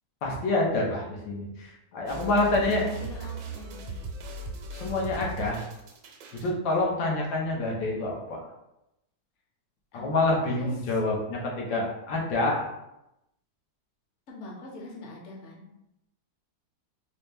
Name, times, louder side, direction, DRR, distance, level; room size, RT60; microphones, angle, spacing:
voice 1, 0.2-2.8 4.7-5.6 6.3-8.4 9.9-12.6, left 2 dB, 85° left, -2 dB, 1.6 m, -27 dB
voice 2, 1.9-4.1 9.9-10.3 10.6-11.0 14.3-15.7, left 2 dB, 55° left, -1 dB, 0.9 m, -43 dB
sound 1, 2.1-6.5, right 4 dB, 75° right, 1.2 m, -38 dB
4.4 x 2.1 x 3.4 m, 0.88 s
omnidirectional pair, 2.0 m